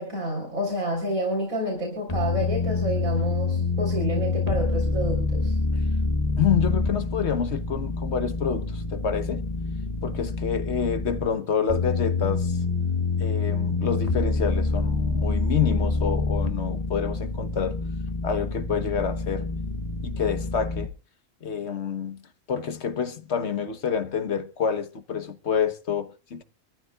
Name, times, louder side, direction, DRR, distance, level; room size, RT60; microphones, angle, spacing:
voice 1, 0.0-5.5, equal, 85° right, 4.3 m, -29 dB
sound 1, 2.1-11.3 11.7-20.9, left 3 dB, 30° left, 1.2 m, -27 dB
voice 2, 6.4-9.4 10.0-12.6 13.2-17.8 18.2-19.5 20.0-20.9 21.4-22.2 22.5-26.4, left 7 dB, 55° left, 1.3 m, -28 dB
26.0 x 14.0 x 2.3 m
omnidirectional pair, 1.4 m